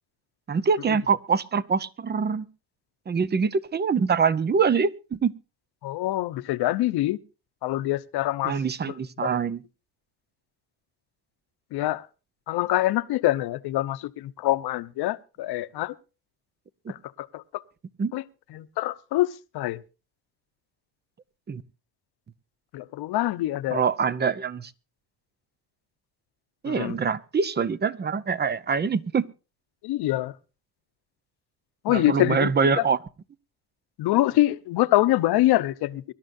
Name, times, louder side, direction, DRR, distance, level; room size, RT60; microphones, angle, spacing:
voice 1, 0.5-2.5 3.1-5.3 8.4-9.6 18.0-18.1 21.5-21.6 23.7-24.7 26.6-29.2 31.9-33.0, right 5 dB, 25° right, 0.8 m, -24 dB
voice 2, 5.8-7.2 7.6-8.5 8.8-9.3 11.7-12.1 12.5-15.9 16.9-17.6 18.1-18.2 18.5-19.8 22.7-23.8 26.7-27.0 29.8-30.4 31.8-32.7 34.0-36.0, left 16 dB, 75° left, 0.9 m, -25 dB
24.0 x 12.0 x 2.6 m
cardioid pair, 105°, 39 cm